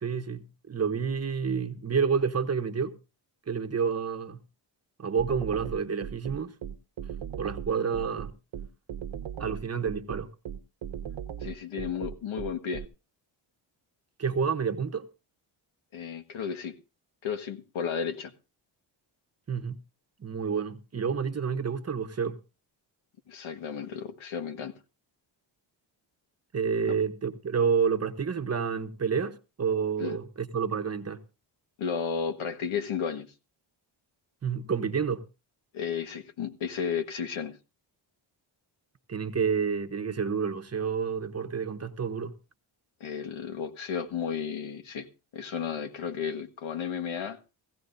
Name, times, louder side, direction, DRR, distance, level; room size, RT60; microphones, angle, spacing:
voice 1, 0.0-2.9 3.5-4.4 5.0-6.5 7.4-8.3 9.4-10.3 14.2-15.1 19.5-19.8 20.2-22.4 26.5-31.2 34.4-35.2 39.1-42.3, right 6 dB, 30° right, 1.0 m, -29 dB
sound 1, 5.2-12.9, right 9 dB, 70° right, 1.1 m, -37 dB
voice 2, 11.4-12.8 15.9-16.7 17.2-18.3 23.3-24.7 26.8-27.0 30.0-30.2 31.8-33.3 35.7-37.6 43.0-45.1 45.3-47.4, left 7 dB, 80° left, 1.6 m, -33 dB
17.5 x 15.5 x 2.6 m
wide cardioid pair, 150°, 47 cm